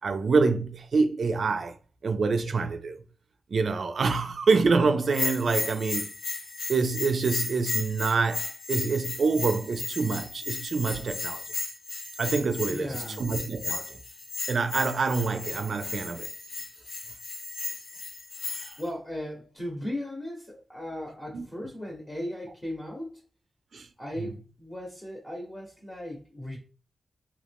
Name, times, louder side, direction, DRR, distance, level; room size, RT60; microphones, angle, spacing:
voice 1, 0.0-1.8 2.0-3.0 3.5-6.1 6.7-11.4 12.2-14.0 14.5-16.3 18.4-18.8 21.3-21.4 23.7-23.9 24.2-24.3, right 4 dB, 65° right, 0.4 m, -26 dB
Bell, 5.1-18.8, left 3 dB, 85° left, 0.6 m, -35 dB
voice 2, 12.7-13.2 18.8-23.2 24.0-26.6, left 1 dB, 15° left, 0.8 m, -37 dB
2.9 x 2.4 x 3.4 m
wide cardioid pair, 130°, 0 cm